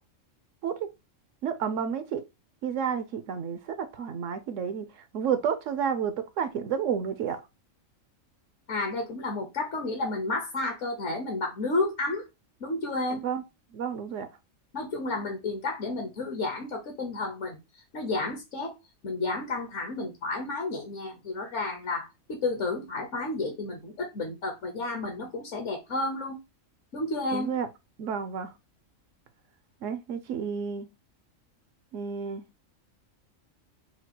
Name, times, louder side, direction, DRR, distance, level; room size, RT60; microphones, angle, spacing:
voice 1, 1.4-2.2 2.6-4.9 5.1-7.4 13.2-13.4 13.7-14.3 27.3-27.7 28.0-28.5 29.8-30.9 31.9-32.4, right 7 dB, 70° right, 0.9 m, -30 dB
voice 2, 8.7-12.3 12.6-13.2 14.7-17.6 17.9-18.7 19.0-26.4 26.9-27.5, left 2 dB, 65° left, 1.2 m, -31 dB
5.8 x 2.3 x 2.8 m
omnidirectional pair, 1.4 m